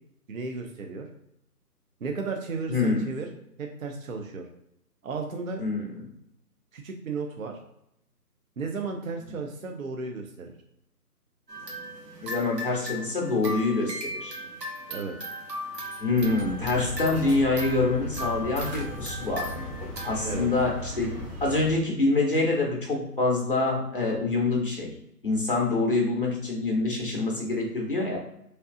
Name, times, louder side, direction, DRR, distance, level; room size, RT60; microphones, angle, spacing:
voice 1, 0.3-1.1 2.0-3.3 3.6-4.5 5.0-5.6 6.7-7.6 8.6-10.5 14.9-15.2 20.2-20.5, right 4 dB, 60° right, 3 dB, 0.5 m, -34 dB
voice 2, 2.7-3.1 5.6-5.9 12.2-14.4 16.0-19.5 20.0-24.9 25.2-28.2, left 3 dB, 35° left, -1 dB, 0.6 m, -26 dB
sound 1, 11.5-21.5, left 1 dB, 90° right, 1.2 m, -38 dB
sound 2, 16.1-21.7, left 1 dB, 40° right, 1.4 m, -37 dB
3.2 x 2.7 x 2.5 m, 0.79 s
figure-of-eight pair, 155°, 48 cm